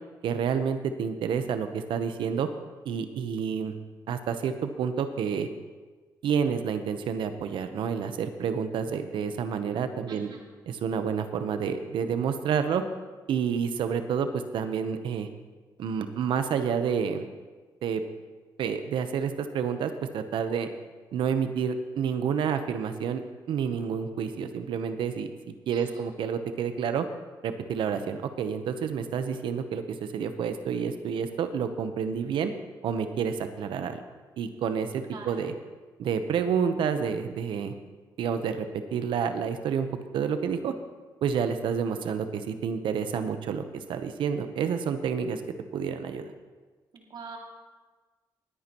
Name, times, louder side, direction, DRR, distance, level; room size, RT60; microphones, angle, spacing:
voice 1, 0.2-2.5 2.8-3.7 4.1-5.5 6.2-10.3 10.7-12.8 13.3-15.3 15.8-17.3 17.8-18.0 18.6-20.7 21.1-23.2 23.5-25.3 25.7-27.1 27.4-32.5 32.8-34.0 34.4-35.5 36.0-37.7 38.2-38.7 38.9-39.9 40.1-40.7 41.2-45.4 45.7-46.3, right 7 dB, 80° right, 9 dB, 0.9 m, -29 dB
voice 2, 10.1-10.4 25.7-26.0 35.1-35.3 46.9-47.4, right 5 dB, 65° right, 0 dB, 2.4 m, -44 dB
20.0 x 9.6 x 3.0 m, 1.4 s
cardioid pair, 70°, 8 cm